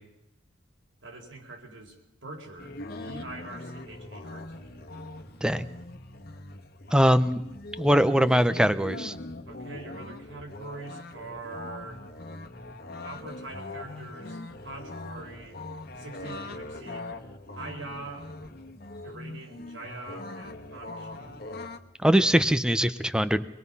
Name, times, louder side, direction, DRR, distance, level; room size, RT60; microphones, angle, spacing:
voice 1, 1.0-4.9 9.5-12.1 13.0-15.6 16.0-17.2 17.5-18.3 19.0-21.6, right 2 dB, 85° right, 2 dB, 4.6 m, -43 dB
sound 1, 2.6-21.8, left 2 dB, 55° left, 1.4 m, -41 dB
voice 2, 6.9-7.4 7.8-9.1 22.0-23.5, equal, 5° right, 13 dB, 0.7 m, -22 dB
25.5 x 21.0 x 5.6 m, 0.89 s
head